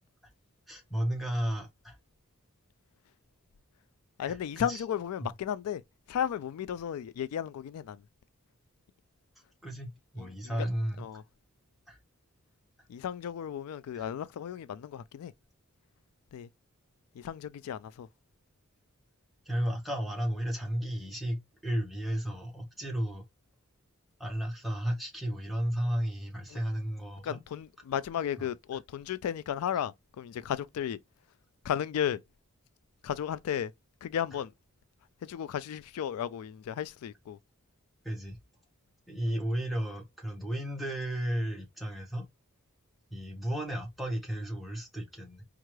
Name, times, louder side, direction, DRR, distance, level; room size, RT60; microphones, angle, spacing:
voice 1, 0.7-2.0 4.3-4.8 5.2-5.3 9.6-9.9 10.1-11.0 11.9-12.0 13.9-14.0 19.4-23.2 24.2-27.4 28.4-28.5 38.0-38.4 39.1-42.3 43.1-45.4, equal, ahead, 0.9 m, -33 dB
voice 2, 4.2-5.8 6.1-8.0 10.2-10.7 11.0-11.2 12.9-15.3 16.3-16.5 17.1-18.1 26.5-26.6 27.2-31.0 31.6-32.2 33.0-33.7 34.0-34.5 35.2-37.4, left 9 dB, 85° left, 0.3 m, -34 dB
4.4 x 2.4 x 3.0 m
head